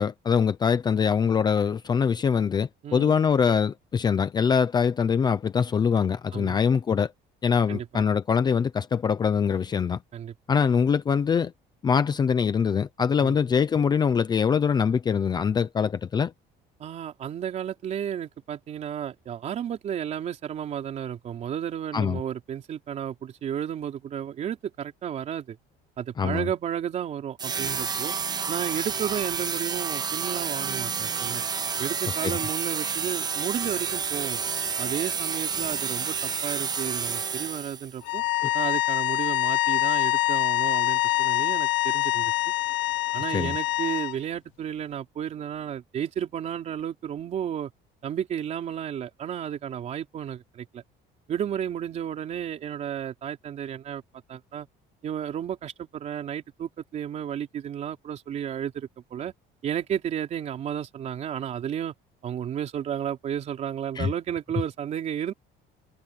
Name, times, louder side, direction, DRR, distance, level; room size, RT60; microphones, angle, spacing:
voice 1, 0.0-7.1 7.4-10.0 10.5-11.5 11.8-16.3 21.9-22.2 26.2-26.5 32.1-32.4 38.4-38.5 43.3-43.6 64.0-64.1, left 6 dB, 20° left, 0.7 m, -23 dB
voice 2, 2.8-3.2 6.3-6.6 7.7-8.0 10.1-10.3 10.8-10.9 13.2-13.4 16.8-25.6 26.0-28.1 28.5-31.4 31.8-34.4 34.8-38.2 38.5-42.3 43.1-47.7 48.0-50.8 51.3-54.0 54.3-54.7 55.0-59.3 59.6-61.9 62.2-65.3, right 9 dB, 35° right, 3.7 m, -32 dB
sound 1, 27.4-38.0, right 6 dB, 20° right, 0.9 m, -30 dB
sound 2, 38.0-44.2, left 19 dB, 70° left, 1.0 m, -25 dB
cardioid pair, 180°, 19 cm